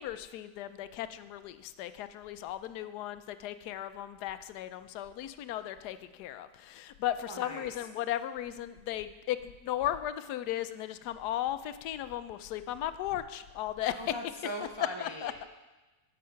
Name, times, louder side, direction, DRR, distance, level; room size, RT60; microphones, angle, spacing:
voice 1, 0.0-14.1 15.0-15.4, left 12 dB, 90° left, 12 dB, 1.1 m, -36 dB
voice 2, 7.3-7.7 14.0-15.4, equal, 35° right, 1 dB, 0.4 m, -40 dB
12.5 x 5.5 x 5.7 m, 1.2 s
omnidirectional pair, 1.7 m